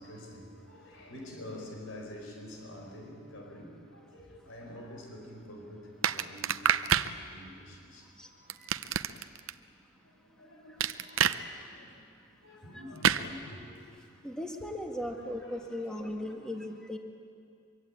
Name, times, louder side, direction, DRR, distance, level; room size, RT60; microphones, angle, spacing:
voice 1, 0.0-8.5 10.0-11.4 11.7-12.0 12.4-14.4 15.0-16.6, left 1 dB, 70° left, 1 dB, 4.8 m, -48 dB
sound 1, 6.0-7.1 8.5-9.5 10.8-11.4 13.0-13.2, right 9 dB, 70° right, 0.7 m, -27 dB
voice 2, 11.3-11.6 14.2-17.0, left 1 dB, 5° left, 2 dB, 1.7 m, -37 dB
24.0 x 23.5 x 8.8 m, 2.4 s
head